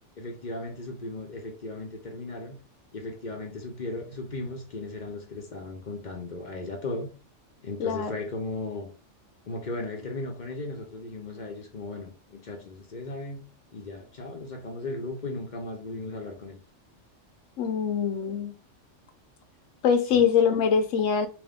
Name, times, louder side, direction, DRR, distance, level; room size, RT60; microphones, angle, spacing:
voice 1, 0.2-2.6 2.9-7.1 7.6-8.9 9.5-13.4 13.7-16.6 20.1-20.2, left 2 dB, 45° left, 0.7 m, -36 dB
voice 2, 7.8-8.1 17.6-18.5 19.8-21.3, left 7 dB, 80° left, 1.0 m, -23 dB
3.5 x 2.6 x 3.5 m
omnidirectional pair, 1.3 m